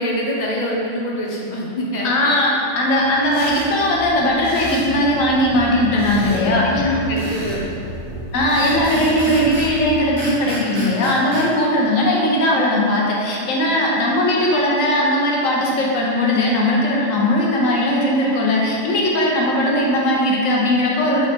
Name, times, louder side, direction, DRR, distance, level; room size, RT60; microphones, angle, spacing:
voice 1, 0.0-2.5 6.2-7.7, left 1 dB, 45° left, -3 dB, 0.6 m, -25 dB
voice 2, 2.0-6.9 8.3-21.3, left 1 dB, 85° left, -3 dB, 1.2 m, -18 dB
sound 1, 2.7-9.8, equal, 30° left, 1.4 m, -33 dB
sound 2, 3.3-3.7 4.4-4.9 6.0-6.4 7.2-7.6 8.5-9.7 10.2-11.5, equal, 80° right, 1.3 m, -30 dB
4.0 x 3.1 x 4.3 m, 2.5 s
omnidirectional pair, 1.4 m